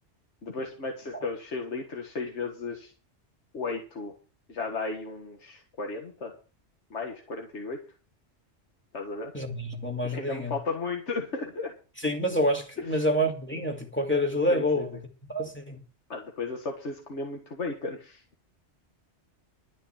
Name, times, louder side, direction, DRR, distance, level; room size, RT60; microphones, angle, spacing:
voice 1, 0.4-2.9 3.5-4.2 4.5-6.4 6.9-7.8 8.9-9.3 10.0-11.7 12.9-13.0 14.5-14.9 16.1-18.2, left 3 dB, 75° left, 1.9 m, -34 dB
voice 2, 9.3-10.5 12.0-14.9 15.3-15.8, equal, 10° left, 2.4 m, -27 dB
12.0 x 5.8 x 8.8 m
omnidirectional pair, 1.2 m